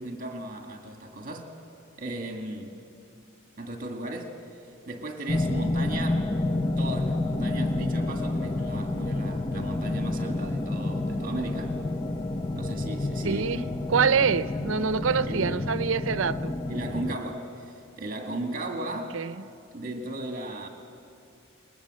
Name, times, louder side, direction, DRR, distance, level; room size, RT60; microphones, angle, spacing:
voice 1, 0.0-1.6 2.0-2.8 3.6-6.3 6.8-11.8 12.5-13.4 13.9-14.4 15.0-15.9 16.7-19.2 19.7-20.7, right 2 dB, 45° right, 3 dB, 2.1 m, -36 dB
sound 1, 5.3-17.2, left 2 dB, 25° left, 0.7 m, -29 dB
voice 2, 13.2-13.6 13.9-16.5 19.1-19.3, right 6 dB, 80° right, 14 dB, 0.6 m, -25 dB
28.5 x 21.0 x 7.7 m, 2.5 s
head